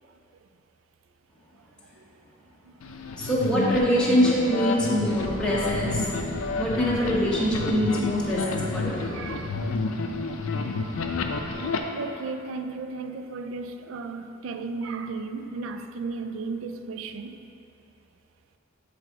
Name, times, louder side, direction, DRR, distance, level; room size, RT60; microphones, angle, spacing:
sound 1, 2.8-11.8, left 3 dB, 85° left, 0.5 m, -30 dB
voice 1, 3.2-6.1 6.6-9.2, equal, 5° left, 0.9 m, -24 dB
Fire, 5.0-10.2, left 1 dB, 30° left, 0.6 m, -41 dB
voice 2, 9.0-9.8 12.0-17.4, right 4 dB, 70° right, 0.3 m, -35 dB
7.7 x 3.5 x 4.6 m
head